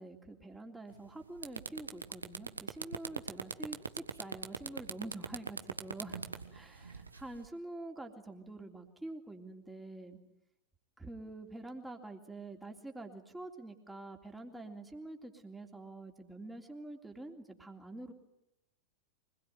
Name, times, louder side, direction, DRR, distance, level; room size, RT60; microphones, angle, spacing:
voice 1, 0.0-6.2 6.5-10.2 11.0-18.1, right 2 dB, 5° right, 3 dB, 3.3 m, -46 dB
sound 1, 0.9-1.1 1.4-7.5, right 4 dB, 80° right, 1.5 m, -40 dB
25.0 x 21.0 x 9.5 m, 0.85 s
figure-of-eight pair, 90°, 0 cm